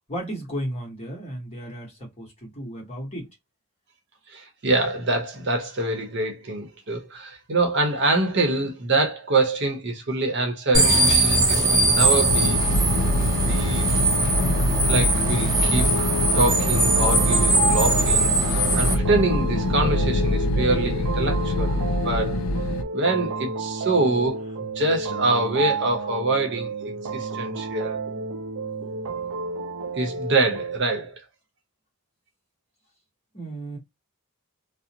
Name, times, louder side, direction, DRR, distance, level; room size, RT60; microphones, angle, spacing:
voice 1, 0.1-3.3 13.8-14.1 33.3-33.8, equal, 30° left, 1.0 m, -34 dB
voice 2, 4.3-12.6 13.5-13.9 14.9-16.1 16.3-21.8 22.0-22.4 22.9-28.0 29.9-31.2, right 2 dB, 50° right, 0.8 m, -25 dB
sound 1, 10.7-18.9, right 2 dB, 15° right, 0.6 m, -21 dB
sound 2, 12.3-22.8, left 1 dB, 70° left, 0.4 m, -24 dB
sound 3, 16.3-30.8, right 4 dB, 85° right, 0.5 m, -31 dB
2.5 x 2.0 x 2.8 m
head